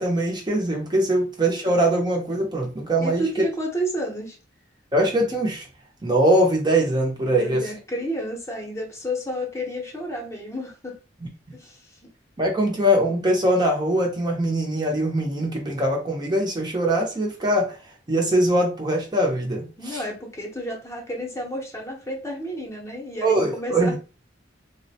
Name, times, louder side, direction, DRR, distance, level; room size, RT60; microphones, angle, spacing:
voice 1, 0.0-3.2 4.9-5.7 6.0-7.6 12.4-17.8 18.1-20.0 23.2-23.9, right 1 dB, 25° right, 0 dB, 0.6 m, -22 dB
voice 2, 3.0-4.4 7.3-11.0 11.5-12.1 19.8-24.0, equal, 15° left, 1 dB, 0.7 m, -31 dB
3.6 x 2.0 x 2.7 m, 0.34 s
head